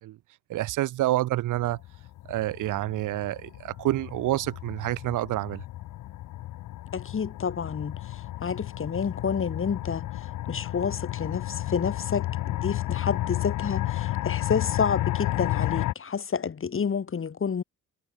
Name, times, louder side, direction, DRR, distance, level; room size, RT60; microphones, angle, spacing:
voice 1, 0.5-1.8 2.3-5.6, right 15 dB, 90° right, 5.6 m, -28 dB
sound 1, 1.6-15.9, left 15 dB, 90° left, 7.7 m, -32 dB
voice 2, 6.9-8.0 8.4-10.1 10.5-17.6, left 6 dB, 45° left, 7.9 m, -29 dB
cardioid pair, 90°, 30 cm